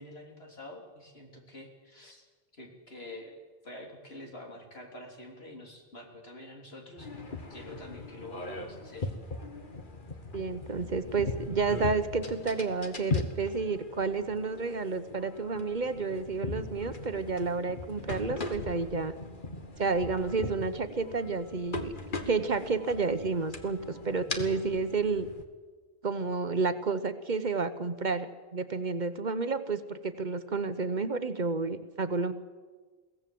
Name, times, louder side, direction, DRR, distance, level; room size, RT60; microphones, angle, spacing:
voice 1, 0.0-2.3 2.5-3.4 3.6-7.1 7.5-9.1, left 1 dB, 75° left, 1 dB, 3.6 m, -46 dB
sound 1, 7.0-25.4, left 3 dB, 55° left, 1.7 m, -39 dB
voice 2, 10.3-19.1 19.8-21.9 22.3-25.3 26.0-32.3, right 4 dB, 50° right, 11 dB, 1.0 m, -30 dB
22.5 x 17.0 x 7.7 m, 1.4 s
omnidirectional pair, 1.1 m